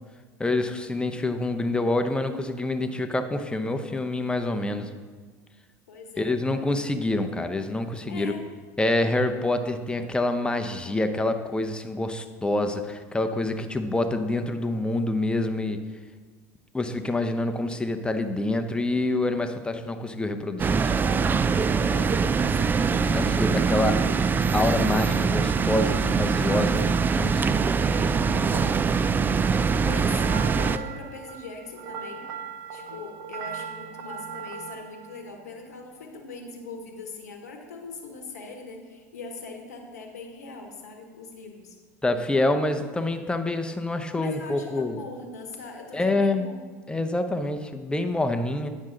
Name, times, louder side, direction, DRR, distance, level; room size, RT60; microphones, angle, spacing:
voice 1, 0.4-4.9 6.2-8.3 8.8-15.8 16.7-20.9 23.1-23.9 24.5-26.8 27.2-27.7 28.3-28.5 42.0-45.0 45.9-46.5 46.9-48.7, left 2 dB, 10° left, 7 dB, 0.7 m, -26 dB
voice 2, 5.9-6.3 8.1-8.4 21.8-23.0 23.3-24.2 28.4-28.9 29.7-30.2 30.5-32.2 32.7-41.8 44.1-46.6, left 3 dB, 85° left, 3 dB, 1.1 m, -41 dB
sound 1, 20.6-30.8, right 5 dB, 20° right, 0.3 m, -23 dB
sound 2, 30.2-36.4, right 6 dB, 65° right, 0.7 m, -39 dB
9.4 x 6.3 x 3.8 m, 1.5 s
hypercardioid pair, 80°, 9 cm